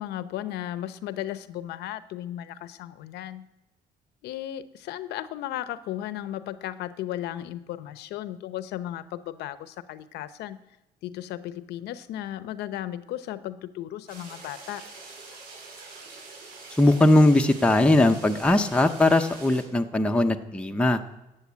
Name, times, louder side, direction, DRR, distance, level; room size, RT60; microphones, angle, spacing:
voice 1, 0.0-3.5 4.2-10.6 11.0-14.8, left 12 dB, 80° left, 13 dB, 0.8 m, -35 dB
sound 1, 14.1-19.6, right 3 dB, 75° right, 6.1 m, -44 dB
voice 2, 16.8-21.0, left 1 dB, 5° left, 4 dB, 0.8 m, -20 dB
13.0 x 8.5 x 8.4 m, 0.97 s
cardioid pair, 110°, 17 cm